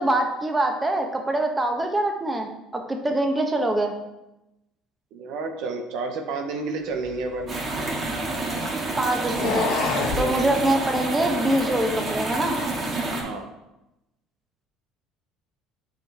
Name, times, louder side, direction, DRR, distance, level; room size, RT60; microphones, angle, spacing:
voice 1, 0.0-3.9 9.0-9.7 10.2-12.6, right 1 dB, 15° right, 4 dB, 1.1 m, -24 dB
voice 2, 5.1-7.5 10.1-10.5 13.2-13.4, right 3 dB, 70° right, 5 dB, 0.9 m, -30 dB
sound 1, 7.0-8.5 9.2-10.3, left 4 dB, 75° left, 1.3 m, -28 dB
sound 2, 7.5-13.2, right 2 dB, 40° right, 2.2 m, -28 dB
7.5 x 4.7 x 3.6 m, 0.94 s
hypercardioid pair, 75°, 0 cm